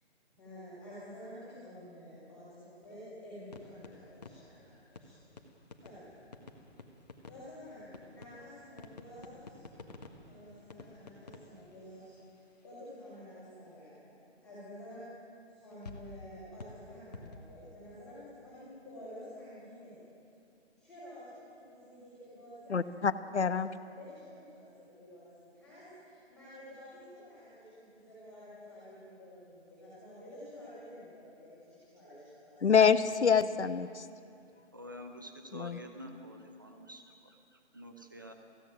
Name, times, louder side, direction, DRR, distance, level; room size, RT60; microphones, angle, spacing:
voice 1, 0.4-5.2 5.8-6.0 7.3-9.6 10.2-12.4 12.6-15.1 15.5-20.0 20.8-22.8 23.4-23.5 23.9-32.6, left 1 dB, ahead, -14 dB, 4.7 m, -50 dB
sound 1, 3.4-12.7 13.0-13.1 15.7-18.3, left 3 dB, 35° left, 1.6 m, -52 dB
voice 2, 22.7-23.7 32.6-34.0 35.5-35.8, left 6 dB, 75° left, 12 dB, 1.2 m, -26 dB
voice 3, 34.7-38.3, equal, 20° right, 5 dB, 0.9 m, -48 dB
21.5 x 16.0 x 9.4 m, 2.6 s
hypercardioid pair, 180°, 35 cm